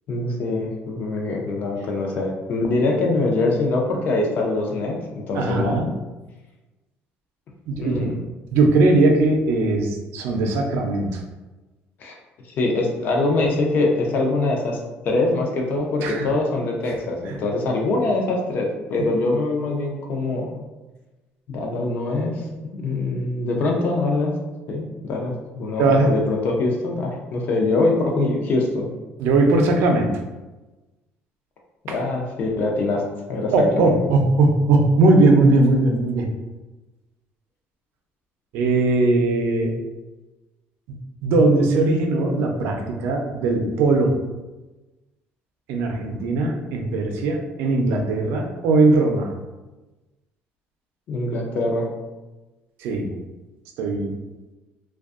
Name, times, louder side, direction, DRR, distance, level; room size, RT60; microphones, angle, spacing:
voice 1, 0.1-4.9 5.3-5.8 7.8-8.1 12.0-12.2 12.5-14.8 15.0-20.6 21.5-24.3 24.7-28.9 31.8-33.0 33.3-33.9 51.1-51.9, left 2 dB, 50° left, 0 dB, 0.5 m, -23 dB
voice 2, 5.4-5.9 7.7-8.1 8.5-11.2 16.0-16.3 17.3-17.4 25.8-26.1 29.2-30.2 31.9-32.0 33.5-36.3 38.5-39.7 40.9-44.2 45.7-49.3 52.8-53.1 53.8-54.1, right 2 dB, 80° right, 2 dB, 0.4 m, -19 dB
2.5 x 2.2 x 2.4 m, 1.1 s
cardioid pair, 150°, 4 cm